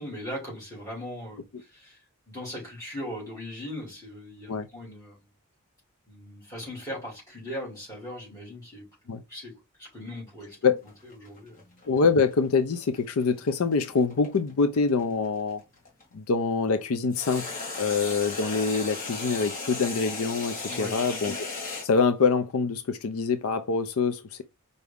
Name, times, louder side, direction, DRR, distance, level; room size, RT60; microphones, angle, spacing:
voice 1, 0.0-5.3 6.1-8.9 9.3-10.6 11.0-11.6 20.7-21.0, equal, 15° left, 2.6 m, -39 dB
sound 1, 10.8-16.0 17.1-21.9, left 3 dB, 35° left, 1.5 m, -36 dB
voice 2, 11.9-15.6 16.1-24.4, left 4 dB, 80° left, 0.5 m, -25 dB
4.7 x 2.7 x 3.4 m
head